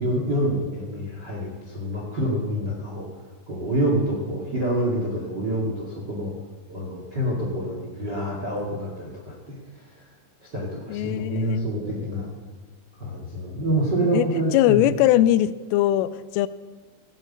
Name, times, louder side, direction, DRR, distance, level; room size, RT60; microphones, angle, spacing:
voice 1, 0.0-3.1 3.5-6.3 6.7-10.0 10.4-12.3 12.9-14.8, right 1 dB, 40° right, -2 dB, 1.5 m, -27 dB
voice 2, 10.9-11.9 14.1-14.3 14.5-16.5, left 13 dB, 85° left, 16 dB, 3.1 m, -21 dB
16.0 x 7.8 x 8.7 m, 1.4 s
omnidirectional pair, 5.7 m